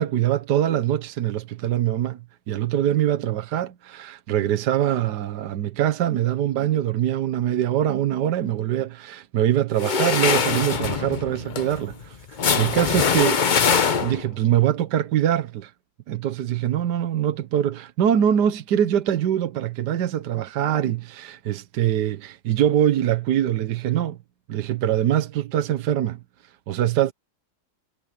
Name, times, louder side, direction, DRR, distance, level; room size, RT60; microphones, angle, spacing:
voice 1, 0.0-2.2 2.5-12.2 12.6-13.5 14.0-15.7 16.1-24.2 24.5-26.2 26.7-27.1, right 11 dB, 75° right, 1.5 m, -23 dB
sound 1, 9.8-14.4, left 6 dB, 45° left, 0.6 m, -23 dB
omnidirectional pair, 1.8 m